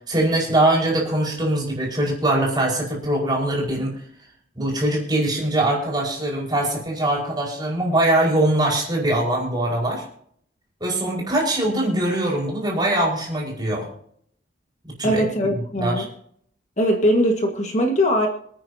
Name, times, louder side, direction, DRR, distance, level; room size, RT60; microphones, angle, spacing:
voice 1, 0.1-4.0 4.5-10.0 10.8-13.9 15.0-15.2 15.8-16.1, right 1 dB, 20° right, -3 dB, 5.1 m, -22 dB
voice 2, 15.0-16.1 16.8-18.3, equal, 35° left, 2 dB, 1.7 m, -20 dB
26.5 x 9.3 x 2.8 m, 0.63 s
head